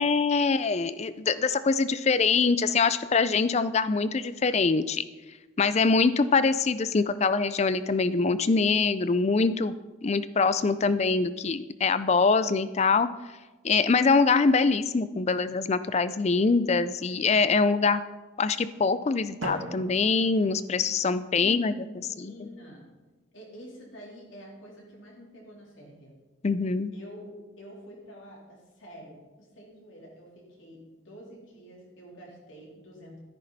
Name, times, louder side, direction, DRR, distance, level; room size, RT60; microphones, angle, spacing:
voice 1, 0.0-5.0 5.6-9.8 10.0-13.1 13.6-18.0 18.4-21.7 22.2-22.3 26.4-26.9, left 4 dB, 30° left, 14 dB, 0.4 m, -24 dB
Drum, 19.4-21.4, right 2 dB, 65° right, 1.1 m, -40 dB
voice 2, 21.4-22.9 23.3-26.1 26.9-33.2, equal, 65° left, -3 dB, 3.6 m, -47 dB
13.5 x 10.0 x 4.1 m, 1.2 s
head